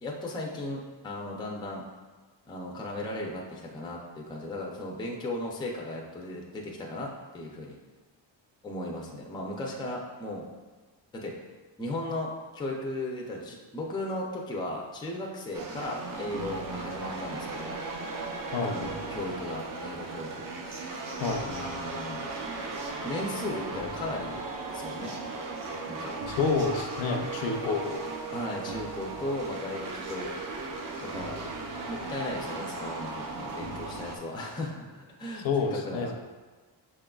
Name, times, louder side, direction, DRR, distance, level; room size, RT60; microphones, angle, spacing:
voice 1, 0.0-1.8 2.5-7.8 8.6-10.5 11.1-11.3 11.8-17.8 18.7-20.9 21.5-22.3 23.0-24.4 24.7-25.2 25.9-26.1 28.3-30.3 31.0-31.4 31.9-35.5 35.7-36.1, left 1 dB, 10° left, -1 dB, 0.4 m, -36 dB
sound 1, 15.5-34.2, right 3 dB, 45° right, 0.6 m, -36 dB
voice 2, 21.2-21.5 26.3-28.0 35.4-36.1, left 4 dB, 75° left, 4 dB, 0.6 m, -28 dB
5.9 x 3.7 x 2.3 m, 1.3 s
wide cardioid pair, 175°, 46 cm